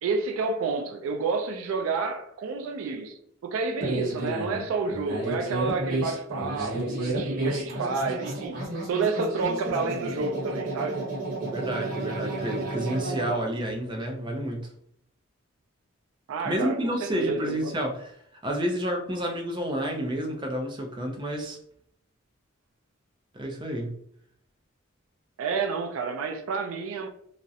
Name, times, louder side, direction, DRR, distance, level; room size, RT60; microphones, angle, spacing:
voice 1, 0.0-11.0 16.3-16.8 17.0-17.7 25.4-27.1, right 4 dB, 85° right, 0.3 m, -30 dB
sound 1, 3.8-13.3, right 2 dB, 45° right, 0.9 m, -31 dB
voice 2, 11.4-14.7 16.4-18.1 18.4-21.6 23.3-23.9, equal, 25° right, 0.4 m, -30 dB
2.4 x 2.0 x 2.6 m
head